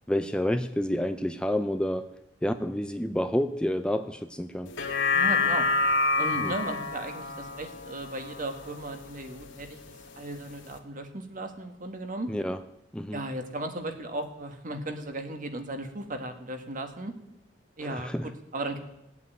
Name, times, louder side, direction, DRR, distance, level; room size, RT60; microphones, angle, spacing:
voice 1, 0.1-2.1 2.4-4.7 6.4-6.5 12.3-12.6 12.9-13.2 17.8-18.3, equal, 5° left, 9 dB, 0.5 m, -29 dB
sound 1, 4.7-9.2 9.6-9.7, left 3 dB, 70° left, 2.1 m, -28 dB
voice 2, 5.1-5.7 6.2-9.8 10.2-12.3 13.1-17.1 17.8-18.8, right 2 dB, 45° right, 6 dB, 1.9 m, -36 dB
17.5 x 8.3 x 9.3 m, 0.87 s
head